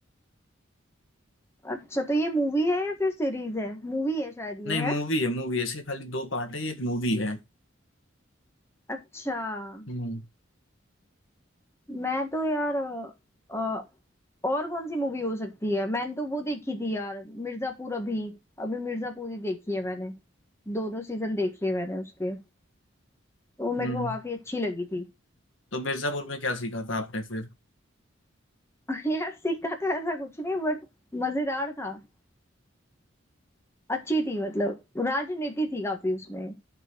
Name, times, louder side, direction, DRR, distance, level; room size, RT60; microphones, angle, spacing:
voice 1, 1.6-5.0 8.9-9.9 11.9-13.1 13.5-13.9 14.4-20.1 20.7-22.4 23.6-25.1 28.9-30.8 31.1-32.0 33.9-36.6, equal, 15° left, 1.6 m, -30 dB
voice 2, 4.7-7.4 9.9-10.2 23.8-24.2 25.7-27.5, left 1 dB, 75° left, 1.8 m, -30 dB
13.5 x 4.5 x 4.6 m
head